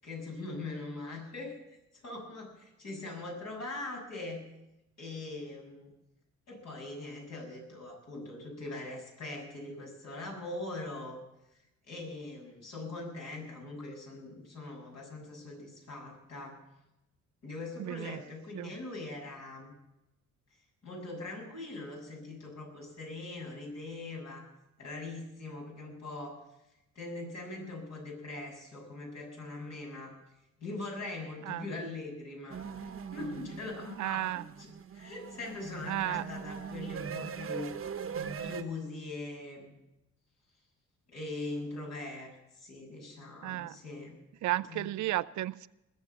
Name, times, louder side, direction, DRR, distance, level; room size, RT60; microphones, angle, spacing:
voice 1, 0.0-1.6 2.0-4.5 5.0-5.9 6.5-11.2 11.9-16.6 17.4-19.7 20.8-24.5 24.8-26.4 26.9-30.1 30.6-32.6 33.1-37.7 38.4-39.7 41.1-44.2 44.6-44.9, left 2 dB, 60° left, -1 dB, 7.0 m, -41 dB
voice 2, 17.8-18.2 18.5-18.7 31.5-31.6 34.0-34.4 35.9-36.2 43.4-43.8 44.4-45.7, right 15 dB, 70° right, 16 dB, 0.5 m, -33 dB
sound 1, 32.5-38.6, right 6 dB, 45° right, 1.1 m, -41 dB
20.5 x 7.2 x 7.9 m, 0.91 s
cardioid pair, 90°, 30 cm